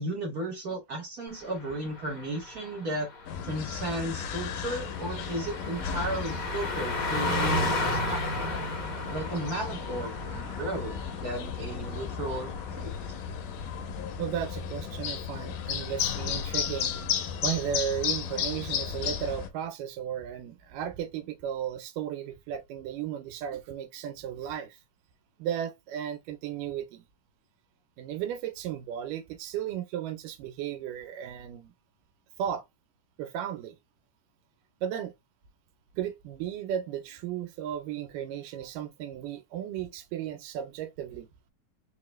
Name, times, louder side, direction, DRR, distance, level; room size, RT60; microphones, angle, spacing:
voice 1, 0.0-3.1 3.4-8.5 9.1-12.9, right 1 dB, 60° right, 0.9 m, -34 dB
Car passing by, 1.4-13.3 13.6-13.8, left 1 dB, 60° left, 0.8 m, -34 dB
sound 1, 3.3-19.5, left 8 dB, 80° left, 2.4 m, -34 dB
voice 2, 14.2-17.0 17.4-24.8 25.4-27.0 28.0-31.7 32.4-32.6 33.2-33.8 34.8-35.1 36.0-41.3, right 10 dB, 85° right, 2.4 m, -35 dB
5.5 x 2.3 x 3.1 m
omnidirectional pair, 3.7 m